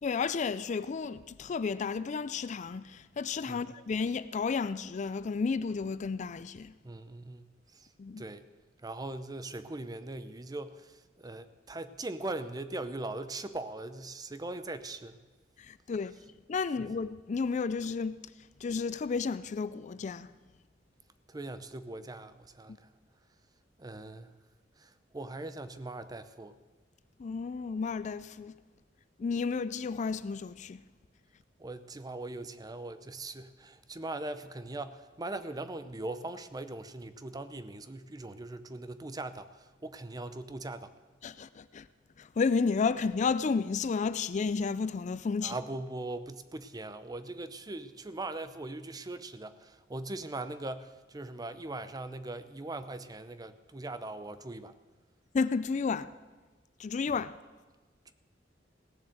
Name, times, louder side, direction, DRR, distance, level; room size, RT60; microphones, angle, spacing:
voice 1, 0.0-6.7 8.0-8.2 15.6-16.2 16.5-18.2 18.6-20.3 27.2-28.5 29.2-30.8 41.2-41.9 42.2-45.6 55.3-56.1 56.8-57.4, left 5 dB, 40° left, 0.4 m, -32 dB
voice 2, 6.8-7.5 7.7-7.9 8.2-8.5 8.8-15.2 16.8-16.9 21.3-22.9 23.8-24.3 24.8-26.5 31.6-40.9 45.4-54.8, right 2 dB, 20° right, 0.6 m, -40 dB
17.0 x 7.3 x 7.7 m
head